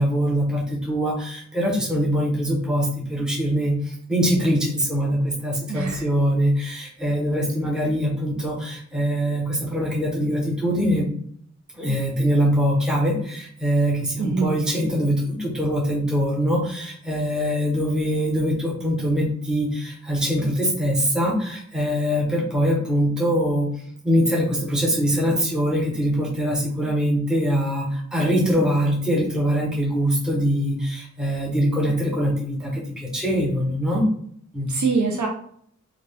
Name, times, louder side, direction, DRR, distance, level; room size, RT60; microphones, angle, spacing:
voice 1, 0.0-11.1 11.7-23.7 24.0-34.1 34.5-34.7, equal, ahead, -4 dB, 0.9 m, -23 dB
voice 2, 5.7-6.1 14.2-14.6 34.7-35.3, right 4 dB, 80° right, 1 dB, 0.6 m, -24 dB
3.4 x 2.3 x 3.3 m, 0.62 s
wide cardioid pair, 80°, 30 cm